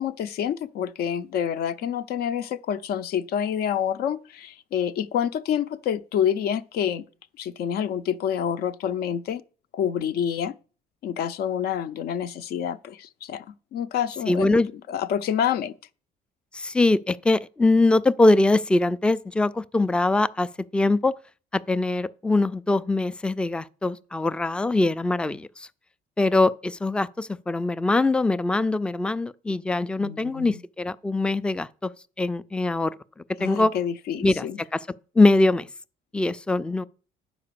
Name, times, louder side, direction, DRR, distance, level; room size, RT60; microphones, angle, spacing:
voice 1, 0.0-7.0 7.4-9.4 9.7-10.5 11.0-13.4 13.7-14.6 14.9-15.7 30.0-30.6 33.4-34.6, left 9 dB, 65° left, 0.6 m, -27 dB
voice 2, 14.3-14.7 16.5-21.1 21.5-25.7 26.2-31.9 32.2-32.9 33.4-33.7 34.2-34.9 35.2-35.7 36.1-36.9, left 2 dB, 5° left, 0.3 m, -22 dB
9.5 x 5.0 x 6.8 m
cardioid pair, 110°, 17 cm